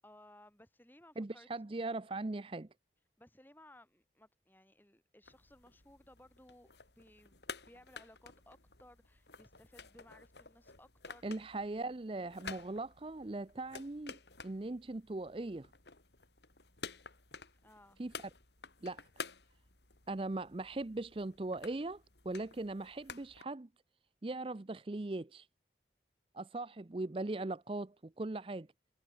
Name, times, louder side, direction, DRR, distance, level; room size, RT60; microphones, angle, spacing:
voice 1, 0.0-1.5 3.2-6.7 7.0-7.4 7.7-11.3 17.6-18.0, left 1 dB, 10° left, 7.9 m, -60 dB
voice 2, 1.2-2.7 11.2-14.2 14.4-15.7 18.0-18.1 18.8-19.0 20.1-23.7 24.2-25.5 26.3-28.7, right 2 dB, 30° right, 0.5 m, -39 dB
sound 1, 5.2-23.4, left 5 dB, 75° left, 5.3 m, -52 dB
head